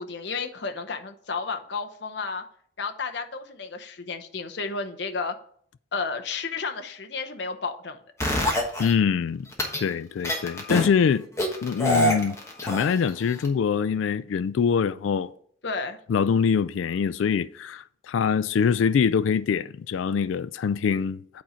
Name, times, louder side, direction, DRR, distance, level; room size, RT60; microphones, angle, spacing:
voice 1, 0.0-2.4 2.8-5.4 5.9-8.0 15.6-16.0, left 4 dB, 60° left, 0.8 m, -32 dB
sound 1, 8.2-8.9 9.5-9.8 10.2-10.9 11.4-13.1 13.4-13.5, equal, 15° left, 1.2 m, -24 dB
voice 2, 8.8-9.5 9.8-11.3 11.6-12.4 12.6-15.3 16.1-21.4, left 6 dB, 80° left, 0.3 m, -24 dB
8.5 x 4.3 x 5.0 m
head